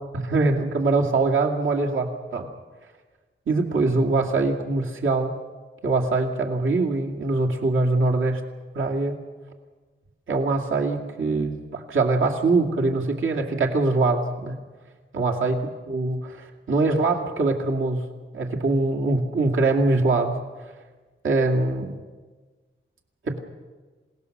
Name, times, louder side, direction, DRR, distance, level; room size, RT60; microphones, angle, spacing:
voice 1, 0.1-2.5 3.5-5.3 5.8-8.4 8.7-9.2 10.3-14.6 15.1-15.6 15.9-18.1 18.3-20.7 21.2-21.9 23.2-23.4, right 3 dB, 75° right, 0 dB, 2.3 m, -23 dB
27.5 x 18.0 x 6.7 m, 1.4 s
wide cardioid pair, 90°, 21 cm